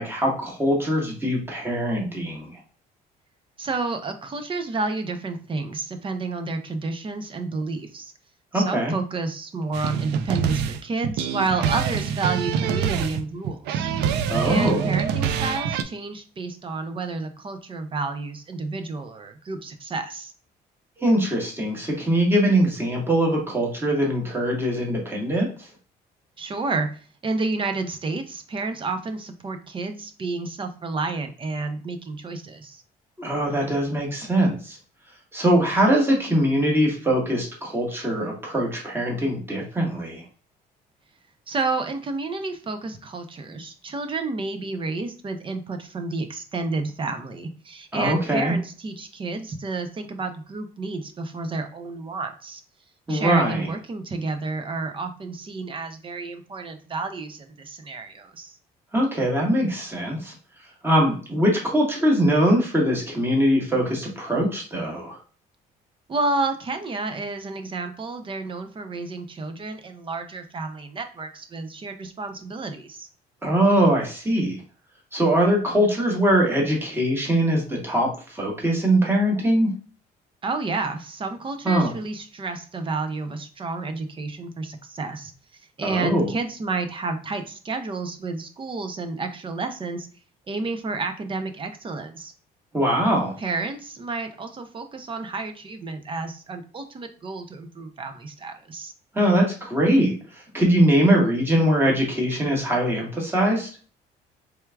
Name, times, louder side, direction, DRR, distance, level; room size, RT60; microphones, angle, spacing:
voice 1, 0.0-2.6 8.5-8.9 14.3-14.9 21.0-25.7 33.2-34.8 35.3-40.2 47.9-48.5 53.1-53.7 58.9-60.3 60.8-65.2 73.4-74.6 75.1-79.7 81.6-81.9 85.8-86.3 92.7-93.3 99.1-103.7, right 1 dB, 15° right, -1 dB, 1.5 m, -22 dB
voice 2, 3.6-8.1 8.5-13.9 14.4-20.3 26.4-26.9 27.2-32.8 41.5-52.6 53.1-58.6 66.1-73.1 80.4-85.3 85.8-90.1 90.5-92.3 93.4-98.9, right 3 dB, 30° right, 7 dB, 0.6 m, -30 dB
sound 1, 9.7-15.8, right 7 dB, 85° right, 0.4 m, -25 dB
4.4 x 3.4 x 2.3 m, 0.40 s
cardioid pair, 110°, 17 cm